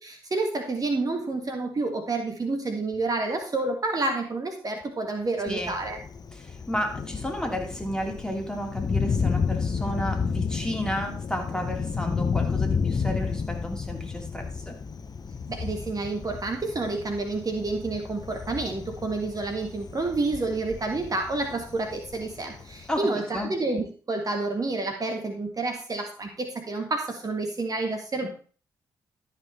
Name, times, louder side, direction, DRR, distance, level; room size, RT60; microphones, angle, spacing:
voice 1, 0.0-6.0 15.5-28.3, right 3 dB, 35° right, 3 dB, 1.8 m, -29 dB
Thunder, 5.5-23.0, left 5 dB, 40° left, 0.9 m, -31 dB
voice 2, 6.3-14.8 22.9-23.5 28.2-28.3, equal, 5° left, 2 dB, 3.0 m, -32 dB
13.0 x 5.7 x 4.2 m, 0.41 s
hypercardioid pair, 45°, 10 cm